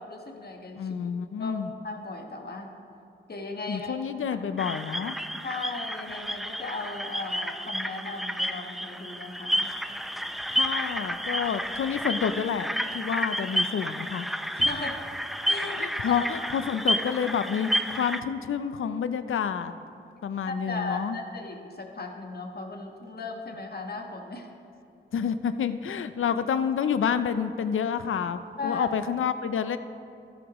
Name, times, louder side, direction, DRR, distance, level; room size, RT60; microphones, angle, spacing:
voice 1, 0.0-0.9 1.4-1.6 1.8-2.7 3.3-4.0 4.5-4.6 5.4-9.7 14.5-15.1 15.5-16.3 20.5-24.5 28.6-28.9, left 3 dB, 50° left, 3 dB, 1.3 m, -36 dB
voice 2, 0.7-1.7 3.7-5.2 10.5-14.3 15.8-19.7 20.2-21.2 25.1-29.8, left 7 dB, 80° left, 11 dB, 0.5 m, -29 dB
sound 1, 4.6-18.2, equal, ahead, 0.5 m, -31 dB
13.0 x 11.0 x 3.1 m, 2.5 s
cardioid pair, 45°, 21 cm